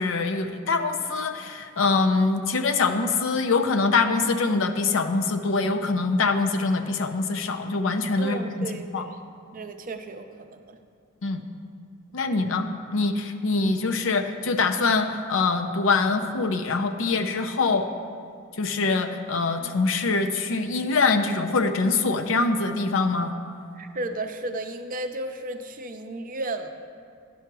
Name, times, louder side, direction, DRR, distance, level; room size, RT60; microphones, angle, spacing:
voice 1, 0.0-9.0 11.2-11.4 12.1-12.7 12.9-17.9 18.6-23.3, left 3 dB, 65° left, 7 dB, 0.6 m, -24 dB
voice 2, 8.2-9.2 9.5-10.8 19.6-19.7 23.8-26.7, right 2 dB, 40° right, 7 dB, 0.5 m, -34 dB
9.9 x 5.7 x 6.1 m, 2.2 s
head